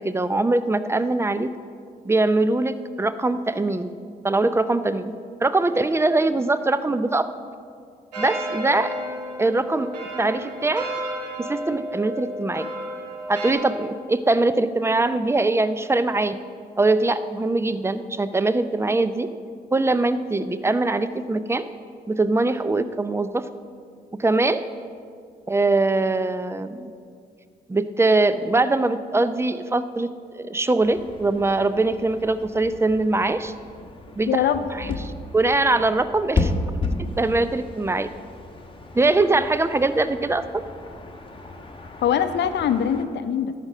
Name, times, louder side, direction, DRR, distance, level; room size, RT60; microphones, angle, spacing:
voice 1, 0.0-1.5 2.0-3.9 4.2-5.1 5.4-7.3 8.2-8.9 9.4-9.9 10.2-10.9 11.4-12.7 13.3-16.4 16.8-19.3 19.7-21.7 22.1-23.4 24.2-24.7 25.5-26.9 27.7-30.1 30.3-33.5 34.2-34.3 35.3-36.5 37.2-38.1 38.9-40.6, right 2 dB, 10° right, 13 dB, 0.6 m, -22 dB
sound 1, 8.1-13.5, equal, 90° right, 1.2 m, -32 dB
sound 2, 30.8-43.0, left 2 dB, 25° left, 1.2 m, -33 dB
voice 2, 34.3-35.0 42.0-43.5, left 8 dB, 60° left, 11 dB, 0.6 m, -23 dB
11.5 x 5.1 x 7.3 m, 2.2 s
hypercardioid pair, 40°, 21 cm